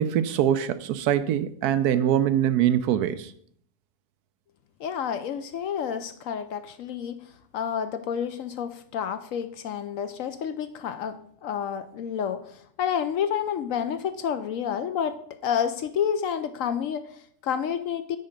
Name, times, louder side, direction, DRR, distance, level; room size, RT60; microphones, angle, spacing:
voice 1, 0.0-3.3, right 10 dB, 80° right, 1.1 m, -23 dB
voice 2, 4.8-18.2, left 8 dB, 70° left, 0.8 m, -30 dB
9.5 x 4.4 x 5.1 m
omnidirectional pair, 1.7 m